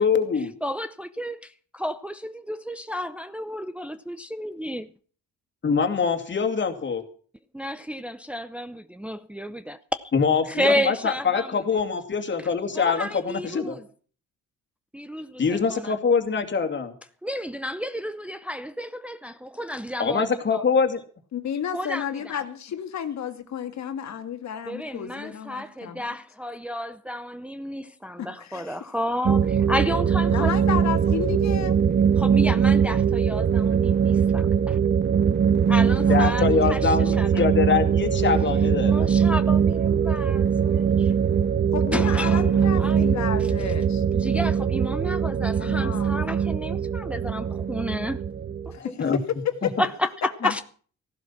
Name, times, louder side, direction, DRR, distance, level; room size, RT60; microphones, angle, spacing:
voice 1, 0.0-0.5 5.6-7.0 10.1-13.8 15.4-16.9 20.0-21.0 36.1-39.1 48.8-49.2 49.6-49.7, left 5 dB, 40° left, 2.5 m, -24 dB
voice 2, 0.6-4.9 7.5-10.0 10.5-11.6 12.7-13.8 14.9-15.9 17.2-20.6 21.7-22.4 24.6-30.5 32.2-34.8 35.7-37.4 38.8-41.1 41.9-43.1 44.1-48.2 48.6-48.7 49.8-50.6, left 1 dB, 5° right, 0.6 m, -31 dB
voice 3, 21.3-26.0 28.2-28.8 30.3-31.8 35.7-36.6 41.7-44.0 45.6-46.1 48.7-49.1 49.6-49.7 50.4-50.6, left 9 dB, 65° left, 1.9 m, -32 dB
sound 1, 29.3-48.7, right 7 dB, 35° right, 0.7 m, -22 dB
15.0 x 11.5 x 5.8 m
cardioid pair, 90°, 30 cm